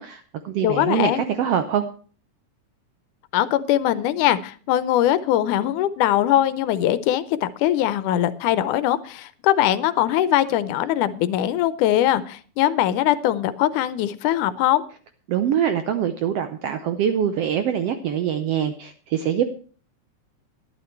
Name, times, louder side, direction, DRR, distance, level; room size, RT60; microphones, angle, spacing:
voice 1, 0.0-1.8 15.3-19.5, right 9 dB, 75° right, 9 dB, 1.4 m, -24 dB
voice 2, 0.6-1.2 3.3-14.8, left 12 dB, 85° left, 15 dB, 2.2 m, -21 dB
12.0 x 11.0 x 4.5 m, 0.41 s
omnidirectional pair, 3.6 m